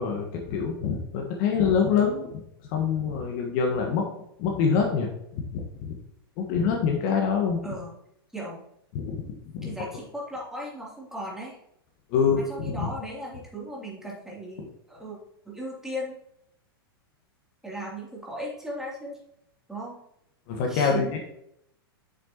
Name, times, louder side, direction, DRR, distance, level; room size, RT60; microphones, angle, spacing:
voice 1, 0.0-2.3 2.7-4.1 4.4-5.1 5.3-5.9 6.4-7.6 9.1-9.2 9.5-9.7 12.1-12.9 20.5-21.3, left 6 dB, 50° left, 1 dB, 1.4 m, -25 dB
voice 2, 7.6-7.9 8.3-8.6 9.6-11.6 12.4-15.2 15.4-16.1 17.6-19.2 19.7-20.0 20.7-21.1, equal, 5° right, -5 dB, 2.9 m, -37 dB
8.3 x 6.7 x 2.9 m, 0.77 s
hypercardioid pair, 105°, 13 cm